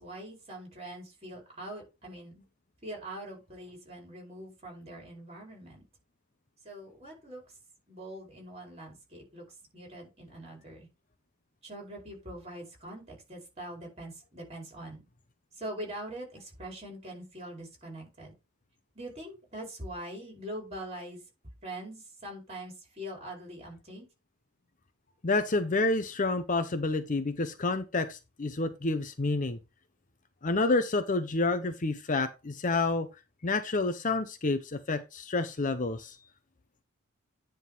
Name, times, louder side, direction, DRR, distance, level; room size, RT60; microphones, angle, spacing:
voice 1, 0.0-2.4 2.8-5.8 6.6-7.4 7.9-9.4 9.7-10.9 11.6-15.1 15.5-18.3 18.9-21.2 21.6-24.1, right 1 dB, 30° right, 4.7 m, -43 dB
voice 2, 25.2-29.6 30.4-33.1 33.4-36.2, left 3 dB, 35° left, 0.7 m, -29 dB
9.9 x 3.8 x 5.4 m
head